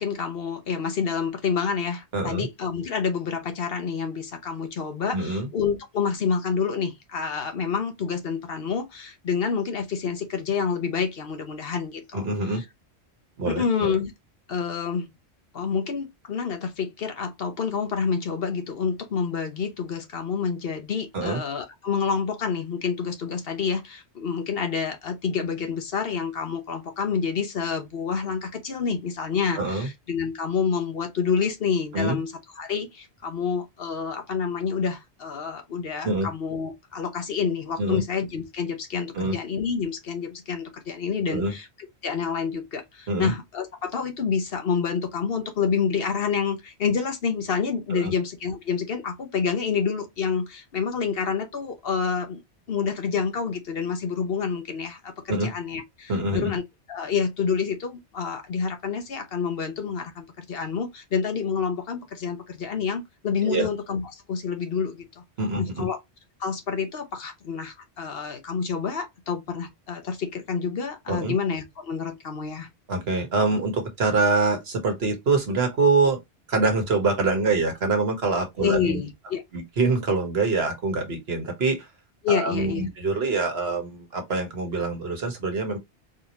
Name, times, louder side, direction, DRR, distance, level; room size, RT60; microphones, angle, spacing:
voice 1, 0.0-12.6 13.4-14.1 14.5-15.1 15.5-32.3 32.6-41.7 42.0-52.4 52.7-56.6 56.9-65.1 65.6-66.0 66.4-72.7 78.6-79.4 82.2-82.9, left 6 dB, 60° left, 1.0 m, -28 dB
voice 2, 2.1-2.5 5.1-5.5 12.1-12.6 13.4-13.9 21.1-21.4 29.6-29.9 31.9-32.2 36.0-36.3 37.8-38.0 39.1-39.3 41.3-41.5 43.1-43.3 47.9-48.1 55.3-55.5 56.1-56.5 63.4-63.7 65.4-65.9 71.1-71.3 72.9-76.2 76.5-79.0 79.5-81.9 82.3-85.8, right 3 dB, 65° right, 1.4 m, -25 dB
4.1 x 2.7 x 2.9 m
omnidirectional pair, 1.1 m